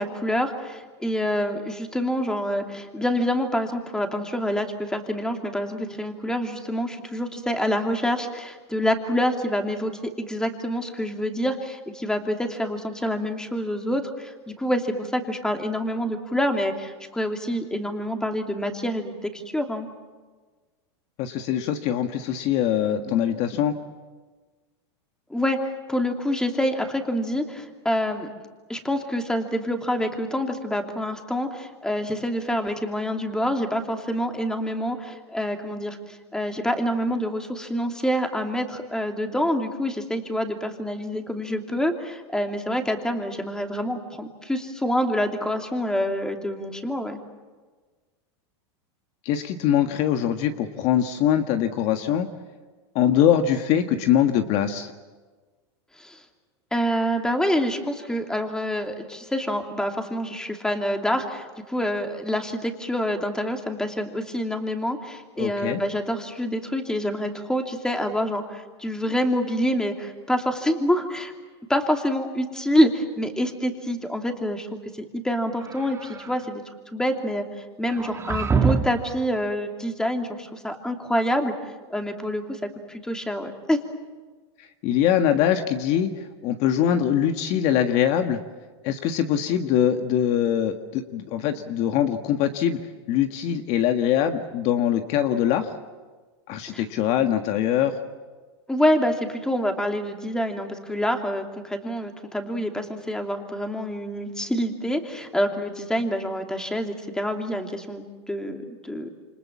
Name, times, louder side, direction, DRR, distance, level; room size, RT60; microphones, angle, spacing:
voice 1, 0.0-19.9 25.3-25.6 25.9-28.3 28.7-47.2 56.0-56.2 56.7-71.3 71.7-76.6 76.9-77.4 77.8-81.5 81.9-83.8 96.7-96.8 98.7-109.1, equal, 5° left, 4 dB, 2.8 m, -27 dB
voice 2, 21.2-23.8 49.2-52.3 52.9-54.9 65.4-65.8 84.6-88.4 88.8-92.8 93.1-95.7 96.5-97.9, left 10 dB, 50° left, 7 dB, 1.6 m, -23 dB
sound 1, 75.6-76.4 77.9-79.1, right 5 dB, 20° right, 1.9 m, -26 dB
28.0 x 25.5 x 7.4 m, 1.4 s
supercardioid pair, 125°, 15 cm